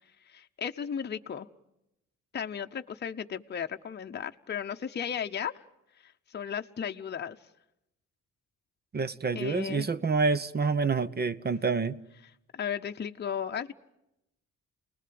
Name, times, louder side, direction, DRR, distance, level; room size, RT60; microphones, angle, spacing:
voice 1, 0.3-1.5 2.3-5.6 6.0-7.4 9.3-9.9 12.5-13.7, left 8 dB, 35° left, 0.9 m, -35 dB
voice 2, 8.9-12.0, right 4 dB, 35° right, 0.9 m, -27 dB
29.0 x 20.0 x 7.7 m
cardioid pair, 90°, 30 cm